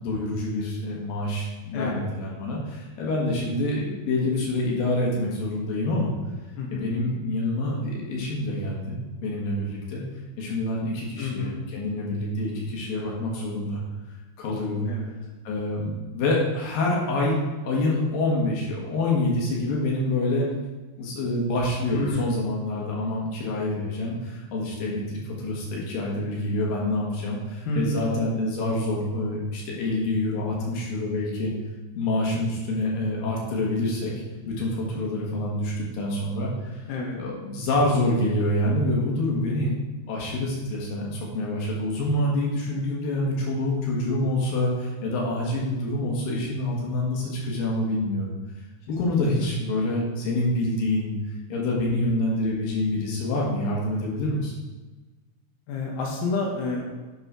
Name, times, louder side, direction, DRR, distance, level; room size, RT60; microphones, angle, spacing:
voice 1, 0.0-6.1 6.7-10.0 10.4-13.8 14.4-14.9 15.4-17.4 17.6-20.5 21.0-31.5 32.0-34.1 34.5-36.7 37.2-39.8 40.1-48.3 48.9-51.1 51.5-54.5, left 1 dB, 60° left, -3 dB, 2.8 m, -26 dB
voice 2, 1.7-2.0 6.6-6.9 11.2-11.5 14.9-15.1 21.9-22.4 27.7-28.1 36.9-37.2 55.7-56.8, left 2 dB, 80° left, -1 dB, 2.1 m, -29 dB
7.1 x 6.7 x 4.8 m, 1.3 s
omnidirectional pair, 5.7 m